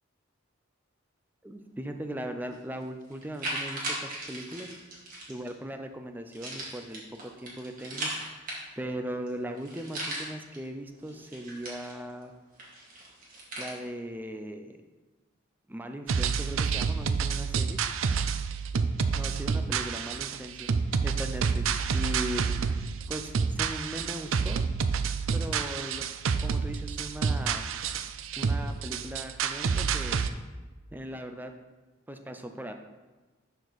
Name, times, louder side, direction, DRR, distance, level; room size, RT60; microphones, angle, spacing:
voice 1, 1.4-4.7 5.3-8.1 8.8-12.3 13.6-14.8 15.7-17.8 19.1-20.7 21.0-22.6 23.1-24.6 25.3-26.1 26.4-27.7 28.4-30.2 30.9-31.5 32.1-32.7, right 1 dB, 10° right, 6 dB, 0.5 m, -38 dB
sound 1, 2.5-2.6 3.1-5.5 6.3-8.9 9.3-9.4 9.6-10.6 11.0-12.2 12.6-13.7, right 1 dB, 45° right, 2.1 m, -37 dB
sound 2, 16.1-30.3, right 5 dB, 75° right, 0.5 m, -29 dB
11.5 x 4.5 x 4.1 m, 1.2 s
head